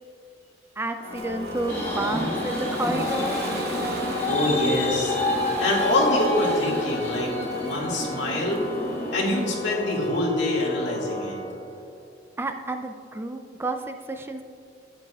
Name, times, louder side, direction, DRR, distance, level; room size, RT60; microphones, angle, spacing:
voice 1, 0.8-3.4 12.4-14.4, right 2 dB, 15° right, 6 dB, 0.3 m, -30 dB
Organ, 1.0-11.9, left 2 dB, 35° left, 1.6 m, -34 dB
Ocean, 1.1-10.0, right 2 dB, 60° right, 1.0 m, -39 dB
sound 1, 1.7-9.3, left 1 dB, 10° left, 1.8 m, -29 dB
voice 2, 4.2-5.2 5.6-8.6 9.1-11.4, left 1 dB, 75° left, -3 dB, 2.1 m, -25 dB
12.0 x 9.2 x 2.4 m, 2.4 s
head